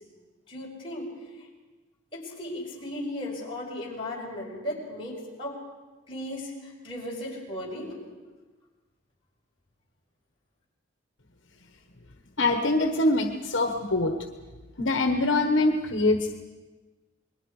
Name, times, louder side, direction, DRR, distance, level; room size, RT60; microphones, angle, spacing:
voice 1, 0.5-1.1 2.1-5.6 6.1-8.0, left 1 dB, 25° left, -4 dB, 5.7 m, -36 dB
voice 2, 12.4-14.1 14.8-16.4, left 2 dB, 70° left, 5 dB, 1.3 m, -24 dB
28.0 x 21.5 x 4.9 m, 1.3 s
head